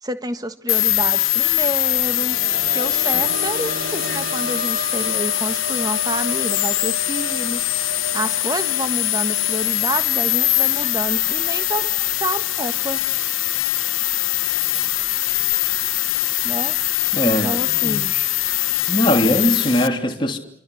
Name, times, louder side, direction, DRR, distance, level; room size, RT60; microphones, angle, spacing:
voice 1, 0.0-2.4 2.7-7.7 8.1-13.1 16.4-16.8 17.2-18.1, right 1 dB, 20° right, 1.6 m, -28 dB
sound 1, 0.7-19.9, left 16 dB, 75° left, 1.1 m, -22 dB
sound 2, 1.9-13.3 13.7-13.8 15.3-15.4, right 1 dB, 50° right, 7.9 m, -34 dB
voice 2, 17.1-18.3 18.9-20.4, left 1 dB, 25° left, 3.1 m, -21 dB
28.5 x 25.5 x 8.0 m
head